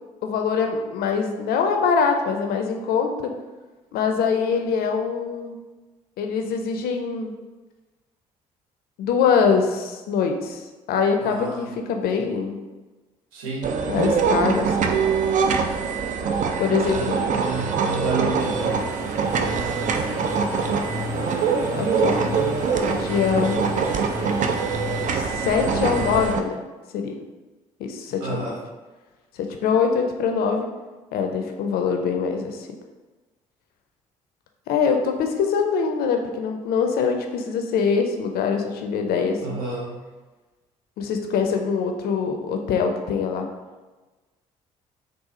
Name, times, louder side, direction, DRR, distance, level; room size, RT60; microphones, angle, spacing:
voice 1, 0.2-3.3 3.9-5.6 6.2-7.3 9.0-10.6 10.9-12.6 13.9-14.9 16.6-17.0 21.8-22.5 22.9-23.6 25.1-26.6 26.9-27.2 27.8-28.4 29.4-30.7 31.1-32.6 34.7-39.4 41.0-43.5, left 6 dB, 60° left, 4 dB, 0.5 m, -23 dB
voice 2, 11.2-11.7 13.3-13.7 16.9-18.6 28.2-28.6 39.4-40.0, right 4 dB, 75° right, -1 dB, 0.7 m, -30 dB
sound 1, 13.6-26.4, right 5 dB, 45° right, 0.4 m, -24 dB
sound 2, 18.4-26.3, left 2 dB, 15° right, 0.8 m, -34 dB
4.0 x 2.3 x 2.7 m, 1.2 s
hypercardioid pair, 45°, 18 cm